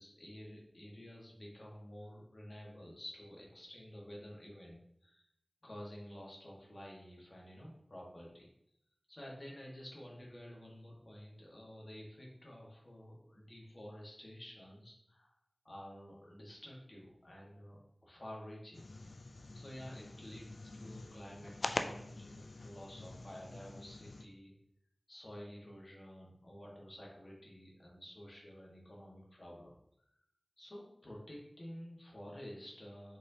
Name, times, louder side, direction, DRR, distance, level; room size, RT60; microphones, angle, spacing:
voice 1, 0.0-5.3 5.6-8.5 9.1-15.3 15.6-18.9 19.5-24.5 25.1-29.7 30.6-33.2, equal, 50° left, -3 dB, 1.5 m, -51 dB
sound 1, 18.7-24.2, left 2 dB, 85° left, 0.3 m, -44 dB
4.6 x 4.2 x 2.8 m, 0.74 s
wide cardioid pair, 55°, 0 cm